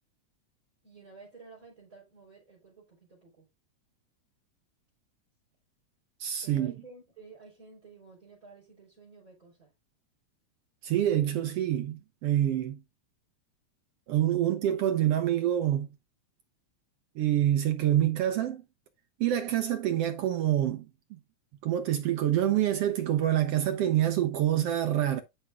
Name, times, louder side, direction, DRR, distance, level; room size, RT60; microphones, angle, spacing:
voice 1, 0.8-3.5 6.4-9.7, right 4 dB, 25° right, 4.3 m, -52 dB
voice 2, 6.2-6.7 10.8-12.8 14.1-15.9 17.2-18.6 19.2-20.9 21.6-25.2, right 11 dB, 70° right, 1.5 m, -26 dB
12.5 x 5.5 x 2.3 m
omnidirectional pair, 3.4 m